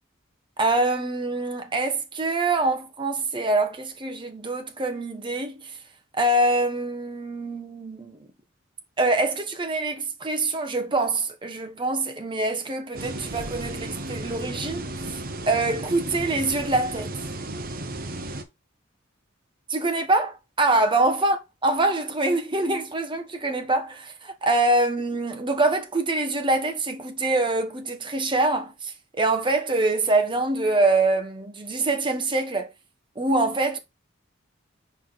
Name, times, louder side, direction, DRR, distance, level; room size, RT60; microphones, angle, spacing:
voice 1, 0.6-5.6 6.2-8.2 9.0-14.8 15.5-17.2 19.7-32.7 33.2-33.8, right 2 dB, 25° right, 1.2 m, -24 dB
sound 1, 12.9-18.4, right 2 dB, 45° right, 1.0 m, -34 dB
5.7 x 4.8 x 4.2 m
head